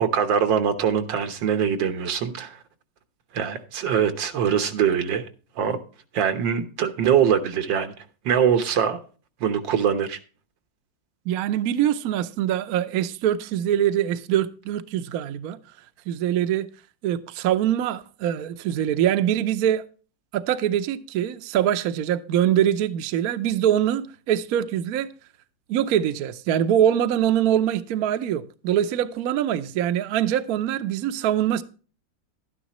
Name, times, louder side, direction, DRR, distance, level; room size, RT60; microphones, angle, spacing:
voice 1, 0.0-2.6 3.3-5.3 5.6-5.8 6.1-7.9 8.3-9.0 9.4-10.2, right 8 dB, 85° right, 1.8 m, -23 dB
voice 2, 11.3-15.6 16.1-16.7 17.0-19.8 20.3-25.1 25.7-31.6, right 10 dB, 65° right, 1.0 m, -23 dB
12.0 x 10.0 x 3.0 m
omnidirectional pair, 2.0 m